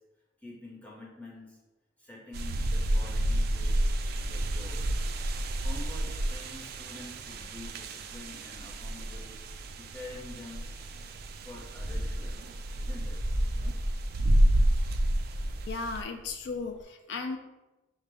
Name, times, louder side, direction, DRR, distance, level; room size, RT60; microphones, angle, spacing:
voice 1, 0.4-1.6 2.0-3.8 4.2-5.1 5.6-9.3 9.8-10.7 11.3-12.4 12.8-13.2, left 2 dB, 10° left, -4 dB, 0.8 m, -47 dB
sound 1, 2.3-16.0, right 1 dB, 55° right, 0.3 m, -30 dB
sound 2, 11.7-16.8, equal, 75° right, 0.7 m, -34 dB
voice 2, 15.7-17.4, left 4 dB, 65° left, 6 dB, 0.3 m, -35 dB
5.8 x 2.1 x 3.4 m, 1.1 s
head